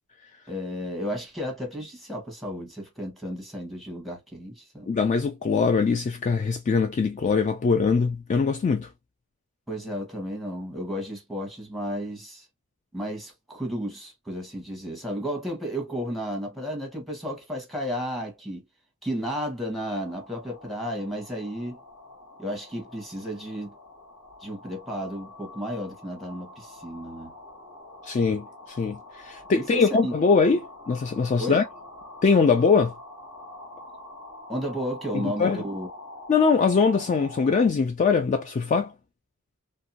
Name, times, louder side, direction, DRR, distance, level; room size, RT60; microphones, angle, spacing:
voice 1, 0.5-4.9 9.7-12.5 12.9-18.6 19.0-21.8 22.4-23.7 24.4-27.3 29.6-30.2 31.4-31.6 34.5-35.9, equal, ahead, 1.0 m, -33 dB
voice 2, 4.9-8.9 28.0-31.6 32.2-32.9 35.1-35.6 36.3-38.9, left 5 dB, 35° left, 0.3 m, -22 dB
sound 1, 20.0-37.7, left 2 dB, 65° left, 1.1 m, -45 dB
2.6 x 2.2 x 2.7 m
head